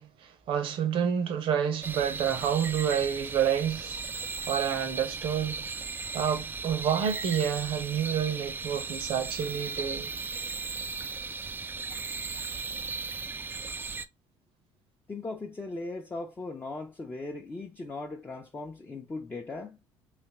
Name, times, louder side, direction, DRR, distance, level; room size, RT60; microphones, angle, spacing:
voice 1, 0.0-4.0 4.5-5.7 6.1-10.1, right 8 dB, 65° right, 0.8 m, -29 dB
sound 1, 1.8-14.1, right 4 dB, 20° right, 0.3 m, -36 dB
voice 2, 15.1-19.8, left 3 dB, 20° left, 0.7 m, -38 dB
3.4 x 3.0 x 3.0 m
supercardioid pair, 80°, 10 cm